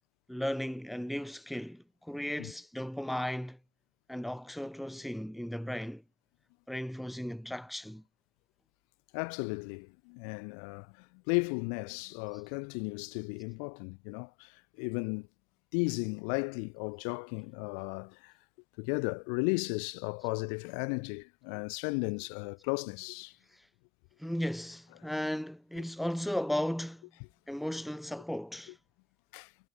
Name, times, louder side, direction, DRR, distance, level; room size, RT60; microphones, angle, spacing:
voice 1, 0.3-3.6 4.1-6.0 6.7-8.0 23.5-23.7 24.2-27.1 27.5-28.8, equal, ahead, 1.4 m, -36 dB
voice 2, 9.1-15.3 15.7-18.3 18.8-23.3 29.3-29.5, left 40 dB or more, 90° left, 3.5 m, -35 dB
cardioid pair, 115°, 40 cm